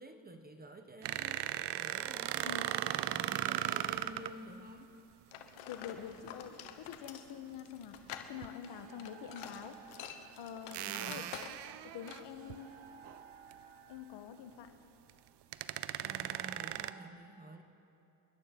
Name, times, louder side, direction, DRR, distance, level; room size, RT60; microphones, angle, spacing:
voice 1, 0.0-4.9 10.8-11.4 16.0-17.6, right 2 dB, 20° right, 7 dB, 1.2 m, -50 dB
sound 1, 1.0-4.3 6.5-6.7 8.3-8.5 9.4-9.5 10.7-12.5 13.0-13.2 13.5-13.6 15.1-15.2 15.5-16.9, right 13 dB, 55° right, 0.6 m, -37 dB
sound 2, 5.3-11.8 12.1-12.3, left 10 dB, 85° left, 1.3 m, -48 dB
voice 2, 5.7-8.0 8.3-9.8 10.4-11.2 11.8-12.7 13.9-14.7, left 8 dB, 60° left, 8 dB, 1.4 m, -46 dB
sound 3, 7.5-17.1, right 6 dB, 80° right, 1.9 m, -58 dB
28.0 x 11.0 x 4.5 m, 2.9 s
cardioid pair, 90°, 49 cm